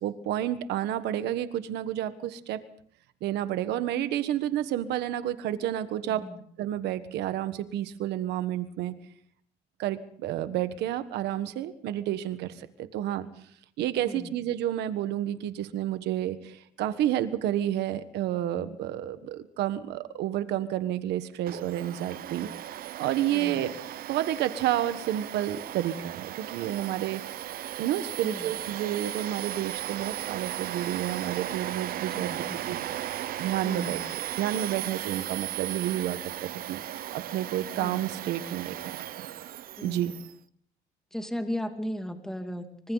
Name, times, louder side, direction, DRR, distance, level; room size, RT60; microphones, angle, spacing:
voice 1, 0.0-2.6 3.2-6.3 6.6-8.9 9.8-13.3 13.8-22.5 23.0-23.7 24.1-32.3 32.7-32.8 33.4-34.0 34.4-36.8 37.1-39.3 39.8-40.1, right 12 dB, 80° right, 12 dB, 1.4 m, -30 dB
voice 2, 6.0-6.4 14.0-14.3 23.3-23.7 28.2-28.5 32.1-32.8 33.6-34.0 35.1-35.2 37.8-38.0 39.8-40.2 41.1-42.9, equal, 5° left, 5 dB, 2.6 m, -36 dB
Domestic sounds home sounds, 21.5-40.3, right 12 dB, 60° right, 0.8 m, -36 dB
26.5 x 24.5 x 4.0 m, 0.63 s
cardioid pair, 110°, 17 cm